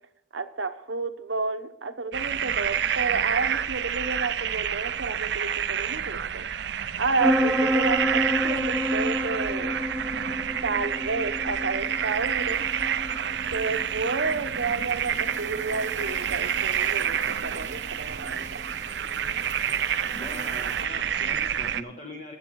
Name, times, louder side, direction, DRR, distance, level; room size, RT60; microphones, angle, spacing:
voice 1, 0.3-6.5 7.0-9.7 10.6-12.6 13.5-18.6, right 4 dB, 80° right, 9 dB, 1.0 m, -31 dB
sound 1, 2.1-21.8, right 8 dB, 65° right, 0.5 m, -28 dB
sound 2, 7.2-18.7, equal, 5° right, 0.5 m, -30 dB
sound 3, 11.8-20.9, right 4 dB, 40° right, 1.0 m, -45 dB
voice 2, 20.1-22.4, equal, 40° left, 0 dB, 1.2 m, -40 dB
22.0 x 7.5 x 4.7 m, 0.79 s
head